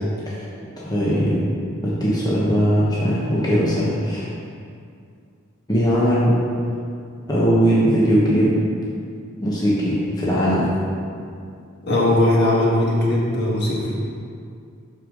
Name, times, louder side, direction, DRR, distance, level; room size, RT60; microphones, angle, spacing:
voice 1, 0.8-1.4 1.8-4.3 5.7-6.4 7.3-8.5 9.4-10.6, equal, 20° left, -7 dB, 1.2 m, -19 dB
voice 2, 11.8-13.9, left 1 dB, 55° left, -5 dB, 1.8 m, -19 dB
11.5 x 4.9 x 3.9 m, 2.3 s
head